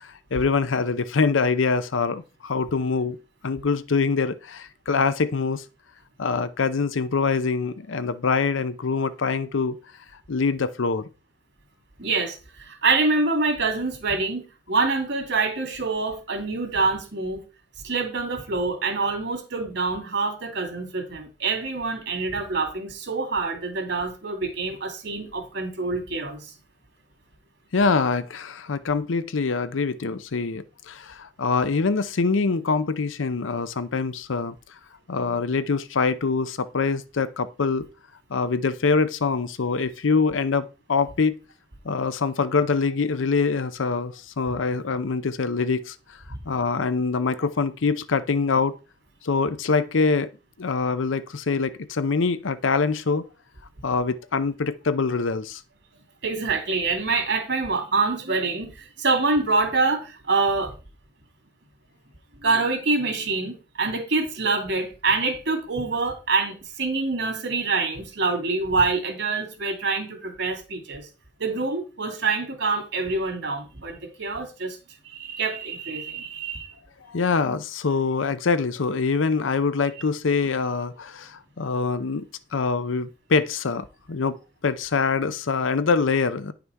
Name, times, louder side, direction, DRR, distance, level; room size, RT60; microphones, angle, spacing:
voice 1, 0.0-3.2 3.4-5.6 6.2-9.8 10.3-11.1 27.7-34.5 35.1-37.9 38.3-41.4 41.8-46.2 46.5-48.8 49.2-50.3 50.6-53.3 53.8-55.6 77.1-82.3 82.5-84.4 84.6-86.5, left 4 dB, 85° left, 0.6 m, -24 dB
voice 2, 12.0-17.4 17.8-26.5 46.3-46.4 56.2-60.7 62.4-71.0 71.4-74.8 75.0-76.7, right 3 dB, 65° right, 2.3 m, -26 dB
9.8 x 5.8 x 4.6 m
head